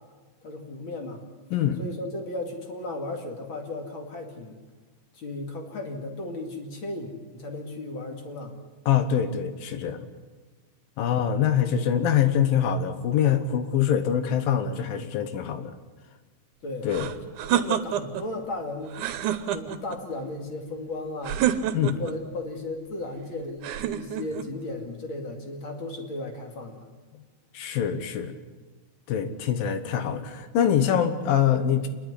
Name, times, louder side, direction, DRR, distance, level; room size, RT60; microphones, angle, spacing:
voice 1, 0.4-1.3 1.8-4.6 5.1-8.6 16.6-17.0 17.5-19.0 19.5-21.4 22.0-26.9, left 2 dB, 40° left, 4 dB, 2.8 m, -35 dB
voice 2, 1.5-1.8 8.9-10.0 11.0-15.7 16.8-17.1 21.7-22.0 27.5-28.3 29.1-31.9, left 9 dB, 85° left, 10 dB, 3.0 m, -24 dB
sound 1, 16.9-18.3 18.9-20.0 21.2-22.2 23.6-24.5, right 10 dB, 70° right, 2.3 m, -28 dB
28.0 x 11.0 x 9.8 m, 1.3 s
omnidirectional pair, 3.9 m